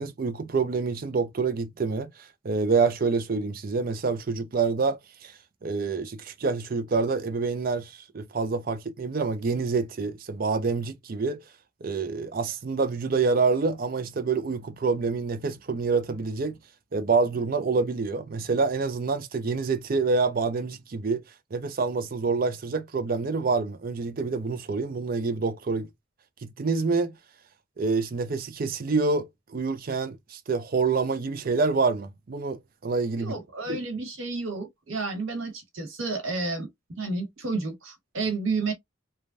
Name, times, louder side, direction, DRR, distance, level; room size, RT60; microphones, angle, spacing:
voice 1, 0.0-5.3 5.6-11.4 11.8-16.6 16.9-21.2 21.5-25.9 26.4-27.1 27.8-33.3 33.7-33.8, right 4 dB, 45° right, 0.4 m, -27 dB
voice 2, 33.2-36.7 37.0-38.7, right 3 dB, 75° right, 1.4 m, -31 dB
3.2 x 2.2 x 2.5 m
head